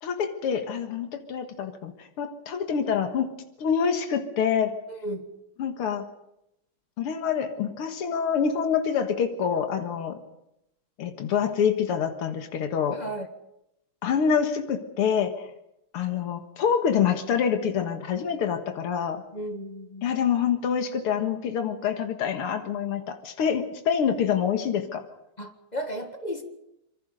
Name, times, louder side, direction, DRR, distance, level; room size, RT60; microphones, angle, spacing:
voice 1, 0.0-3.3 3.6-4.7 5.6-6.1 7.0-10.2 11.0-13.0 14.0-15.5 15.9-19.2 20.0-25.0, left 7 dB, 85° left, 2.5 m, -26 dB
voice 2, 4.9-5.3 12.9-13.3 19.3-20.1 25.4-26.4, right 1 dB, 20° left, 1.7 m, -34 dB
26.5 x 23.5 x 5.3 m
omnidirectional pair, 2.4 m